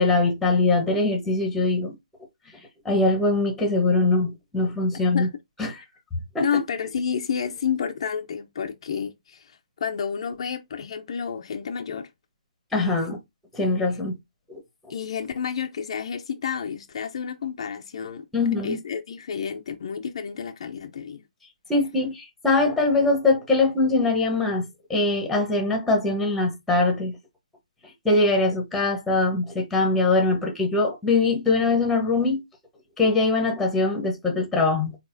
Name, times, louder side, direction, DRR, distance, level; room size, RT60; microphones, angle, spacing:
voice 1, 0.0-1.9 2.8-5.3 5.6-5.8 6.3-6.6 12.7-13.2 13.5-14.1 14.5-14.6 18.3-18.8 21.7-27.2 28.0-32.4 33.0-35.0, left 3 dB, 5° left, 1.0 m, -22 dB
voice 2, 6.4-12.1 12.8-13.0 14.9-18.3 18.6-21.2, left 7 dB, 45° left, 0.6 m, -30 dB
4.2 x 4.0 x 2.6 m
hypercardioid pair, 155°, 4 cm